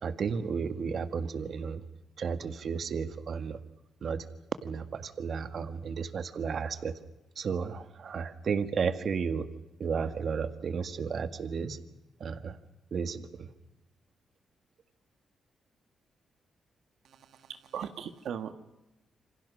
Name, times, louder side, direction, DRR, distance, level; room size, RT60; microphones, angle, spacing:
voice 1, 0.0-1.8 2.2-3.6 4.0-4.2 4.6-6.9 7.4-9.5 9.8-11.8 12.2-12.6 12.9-13.5, right 6 dB, 60° right, 10 dB, 1.8 m, -33 dB
voice 2, 17.0-18.5, right 8 dB, 80° right, 8 dB, 1.6 m, -39 dB
28.0 x 26.0 x 6.4 m, 0.99 s
cardioid pair, 85°, 0 cm